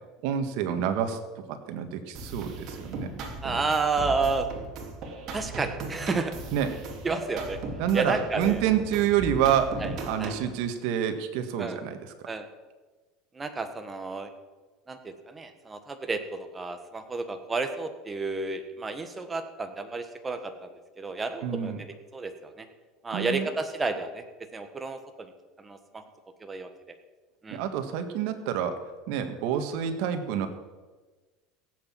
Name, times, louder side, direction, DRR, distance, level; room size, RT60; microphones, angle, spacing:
voice 1, 0.2-1.2 1.5-3.1 6.5-6.8 7.8-12.3 21.4-21.8 23.1-23.5 27.5-30.5, right 9 dB, 65° right, 7 dB, 1.7 m, -28 dB
sound 1, 2.1-10.5, right 3 dB, 45° right, 2.9 m, -37 dB
voice 2, 3.4-4.5 5.3-6.3 7.0-7.6 7.9-8.6 9.8-9.9 10.2-10.3 11.6-11.8 12.2-12.5 13.3-14.3 14.9-20.7 21.0-21.9 22.1-22.7 23.0-24.2 24.5-25.3 25.6-26.0 26.4-26.7 27.4-27.6, right 3 dB, 15° right, 7 dB, 1.5 m, -31 dB
16.5 x 8.1 x 7.5 m, 1.3 s
supercardioid pair, 140°, 0 cm